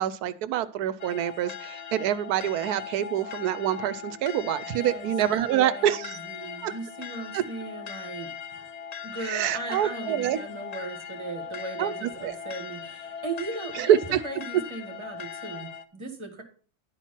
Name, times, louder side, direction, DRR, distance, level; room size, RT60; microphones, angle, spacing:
voice 1, 0.0-6.2 6.6-6.7 7.3-7.4 9.2-10.4 11.8-12.3 13.7-14.2, right 11 dB, 80° right, 15 dB, 1.1 m, -26 dB
sound 1, 1.0-15.8, left 7 dB, 65° left, 0.4 m, -39 dB
voice 2, 4.7-5.1 5.5-8.3 9.0-16.4, right 3 dB, 20° right, 4 dB, 1.7 m, -37 dB
11.5 x 4.5 x 5.7 m, 0.41 s
omnidirectional pair, 1.6 m